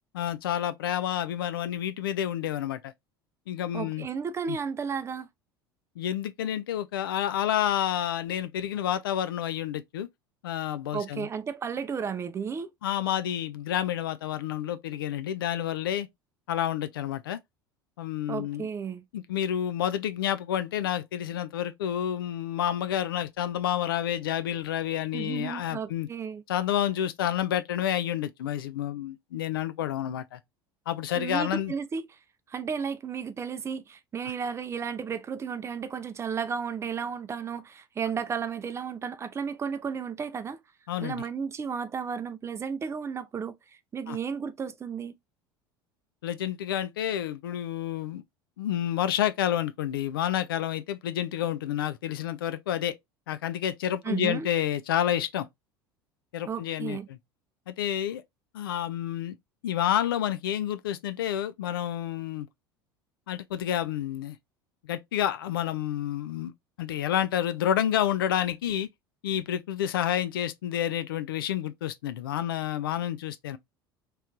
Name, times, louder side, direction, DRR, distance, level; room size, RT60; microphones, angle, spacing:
voice 1, 0.1-2.9 3.5-4.1 4.5-4.6 6.0-10.1 10.4-11.3 12.8-16.1 16.5-17.4 18.0-18.7 19.1-26.1 26.5-30.4 30.9-31.7 40.9-41.2 44.1-44.2 46.2-48.2 48.6-52.9 53.3-55.5 56.3-57.2 57.7-58.2 58.5-59.4 59.6-62.5 63.3-64.4 64.9-66.5 66.8-68.9 69.2-73.6, left 11 dB, 70° left, 0.4 m, -29 dB
voice 2, 3.7-5.3 10.9-12.7 18.3-19.0 25.1-26.4 31.2-32.0 32.5-40.6 41.0-43.5 43.9-45.1 54.0-54.5 56.5-57.1, right 6 dB, 20° right, 0.4 m, -33 dB
3.1 x 3.0 x 2.4 m
figure-of-eight pair, 70°, 12 cm